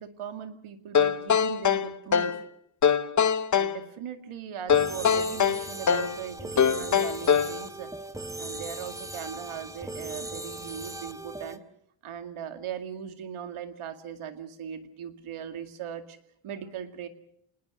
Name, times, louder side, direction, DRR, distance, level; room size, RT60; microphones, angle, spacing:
voice 1, 0.0-2.4 3.5-7.9 8.4-11.6 12.0-16.2 16.4-17.1, right 8 dB, 85° right, 8 dB, 2.3 m, -39 dB
sound 1, 0.9-2.4 2.8-3.8 4.7-6.2 6.6-7.6, left 7 dB, 35° left, 0.8 m, -23 dB
sound 2, 4.7-11.6, right 2 dB, 5° right, 1.0 m, -38 dB
27.5 x 19.5 x 6.4 m, 0.71 s
cardioid pair, 115°, 49 cm